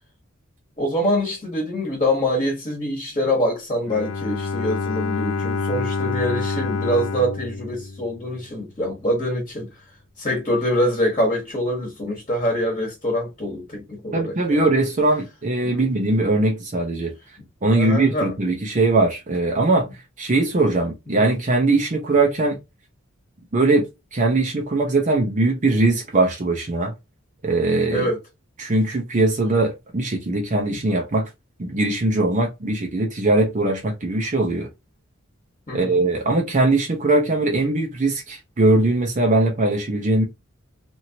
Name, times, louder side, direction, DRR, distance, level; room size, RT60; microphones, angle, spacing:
voice 1, 0.8-9.7 10.2-14.6 15.6-15.8 17.7-18.3 21.1-21.2 27.9-28.2 35.7-36.0, equal, 30° left, 1.2 m, -24 dB
Bowed string instrument, 3.9-8.7, left 4 dB, 75° left, 0.5 m, -27 dB
voice 2, 14.1-17.1 17.6-19.9 20.2-22.6 23.5-26.9 27.4-28.1 28.6-31.3 31.6-34.7 35.7-40.2, right 2 dB, 40° right, 0.6 m, -20 dB
3.0 x 2.6 x 2.7 m
head